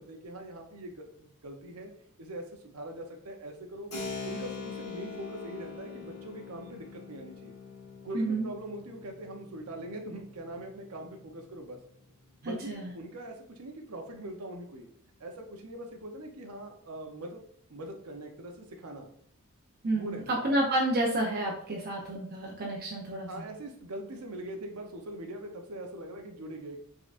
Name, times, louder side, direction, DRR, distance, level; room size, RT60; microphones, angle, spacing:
voice 1, 0.0-1.9 2.2-3.9 4.2-7.5 8.0-11.8 12.4-14.9 15.2-17.4 17.7-19.1 19.9-20.4 23.3-26.8, right 1 dB, 80° right, 2 dB, 0.7 m, -42 dB
Keyboard (musical), 3.9-12.3, left 4 dB, 80° left, 1.7 m, -44 dB
voice 2, 8.1-8.5 12.4-12.9 19.8-23.4, right 1 dB, 45° right, -2 dB, 0.7 m, -30 dB
5.2 x 3.8 x 2.5 m, 0.63 s
head